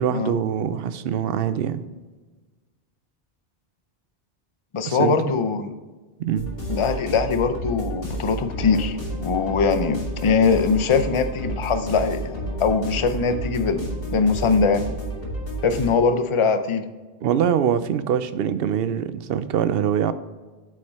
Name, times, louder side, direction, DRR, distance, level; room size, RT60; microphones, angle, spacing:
voice 1, 0.0-1.8 4.9-5.3 6.2-6.5 17.2-20.1, right 8 dB, 70° right, 13 dB, 0.7 m, -23 dB
voice 2, 4.7-5.7 6.7-14.8 15.6-16.9, left 5 dB, 40° left, 9 dB, 0.5 m, -22 dB
sound 1, 6.4-15.9, right 1 dB, 65° left, 2.1 m, -31 dB
8.7 x 5.0 x 4.2 m, 1.3 s
omnidirectional pair, 1.1 m